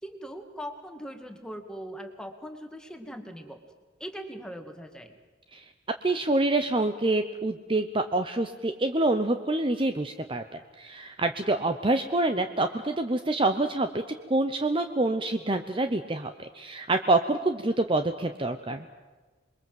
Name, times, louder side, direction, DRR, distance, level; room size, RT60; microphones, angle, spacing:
voice 1, 0.0-3.6 4.0-5.2, equal, 5° left, 5 dB, 2.1 m, -40 dB
voice 2, 6.0-14.0 14.3-18.8, right 2 dB, 25° right, 8 dB, 0.8 m, -26 dB
27.5 x 22.0 x 7.8 m, 1.3 s
head